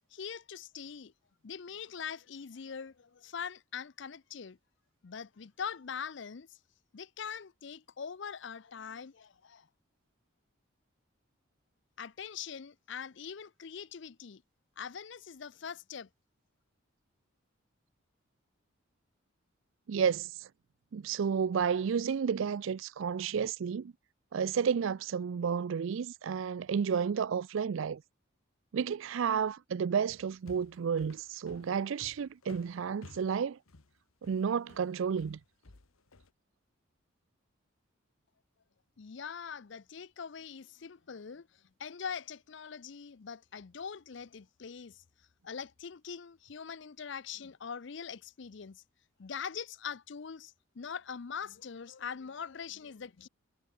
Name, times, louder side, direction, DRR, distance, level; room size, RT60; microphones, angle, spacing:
voice 1, 0.1-1.1 1.4-4.6 5.0-6.5 6.9-9.7 12.0-14.4 14.8-16.1 39.0-41.5 41.8-45.0 45.4-48.8 49.2-53.3, left 6 dB, 55° left, 0.5 m, -42 dB
voice 2, 19.9-20.5 20.9-23.9 24.3-28.0 28.7-33.6 34.2-35.4, right 7 dB, 65° right, 0.4 m, -31 dB
sound 1, 30.1-36.3, left 2 dB, 85° left, 1.3 m, -55 dB
head